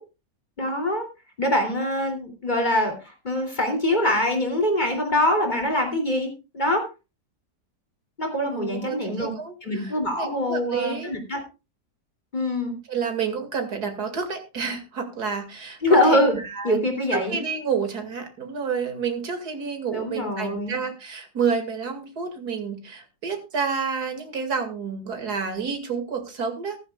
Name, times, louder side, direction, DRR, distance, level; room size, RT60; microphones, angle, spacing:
voice 1, 0.6-1.0 1.4-6.9 8.2-9.3 9.6-11.4 12.3-12.7 15.8-16.3 16.6-17.4 19.9-20.7, left 1 dB, 25° left, 3 dB, 3.0 m, -23 dB
voice 2, 8.4-11.1 12.9-16.8 17.1-26.8, right 6 dB, 70° right, 6 dB, 2.7 m, -29 dB
14.5 x 14.5 x 2.4 m, 0.28 s
omnidirectional pair, 1.8 m